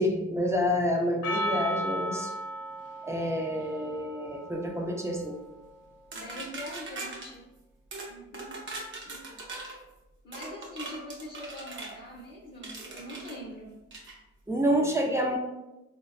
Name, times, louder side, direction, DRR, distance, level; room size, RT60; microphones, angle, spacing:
voice 1, 0.0-2.3 3.0-5.4 14.5-15.4, equal, 10° right, 1 dB, 0.5 m, -28 dB
Percussion, 1.2-5.8, equal, 85° left, 0.7 m, -36 dB
voice 2, 6.1-7.4 8.0-8.6 9.1-9.4 10.2-13.7, left 1 dB, 35° left, -3 dB, 0.7 m, -43 dB
sound 1, 6.1-7.3 7.9-8.1 8.3-9.8 10.3-12.0 12.6-13.4 13.9-14.2, right 2 dB, 40° right, 0.7 m, -40 dB
3.7 x 2.1 x 2.4 m, 0.99 s
cardioid pair, 90°, 30 cm